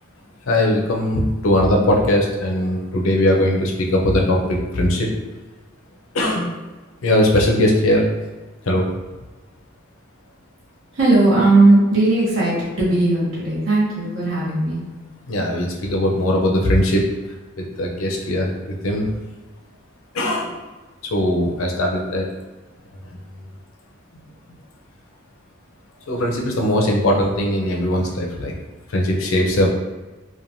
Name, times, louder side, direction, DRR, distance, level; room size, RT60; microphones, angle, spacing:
voice 1, 0.5-5.1 6.1-6.6 7.0-8.0 8.6-8.9 15.3-17.0 17.6-19.1 20.1-20.5 21.1-22.3 26.1-28.5 28.9-29.7, left 1 dB, 85° left, 0 dB, 0.5 m, -19 dB
voice 2, 10.9-14.8, right 2 dB, 65° right, -7 dB, 0.8 m, -17 dB
3.1 x 2.1 x 2.6 m, 1.2 s
head